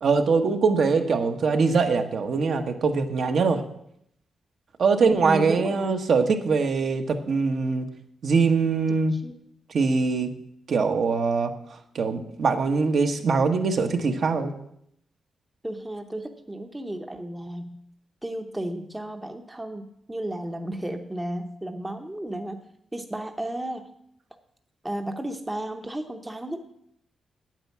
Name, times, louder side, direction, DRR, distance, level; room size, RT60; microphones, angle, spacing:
voice 1, 0.0-3.6 4.8-7.9 8.2-9.1 9.7-10.3 10.7-11.5 11.9-14.5, right 4 dB, 60° right, 5 dB, 1.2 m, -22 dB
voice 2, 5.0-6.0 9.1-9.4 15.6-17.8 18.2-22.6 22.9-23.8 24.8-26.6, right 1 dB, 10° right, 5 dB, 0.8 m, -33 dB
9.2 x 9.0 x 7.3 m, 0.73 s
wide cardioid pair, 145°, 0 cm